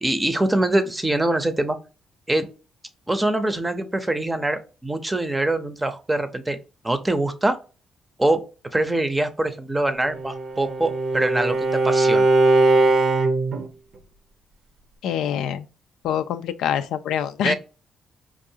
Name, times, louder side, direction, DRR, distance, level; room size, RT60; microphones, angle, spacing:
voice 1, 0.0-1.8 2.3-2.5 3.1-6.6 6.8-7.6 8.2-8.4 8.7-11.6 11.8-12.2 17.4-17.5, right 1 dB, 15° right, 0.6 m, -23 dB
Bowed string instrument, 10.0-13.7, right 2 dB, 60° right, 0.7 m, -20 dB
voice 2, 15.0-15.7 16.0-17.5, left 9 dB, 85° left, 0.3 m, -25 dB
4.5 x 2.4 x 2.7 m
cardioid pair, 90°, 0 cm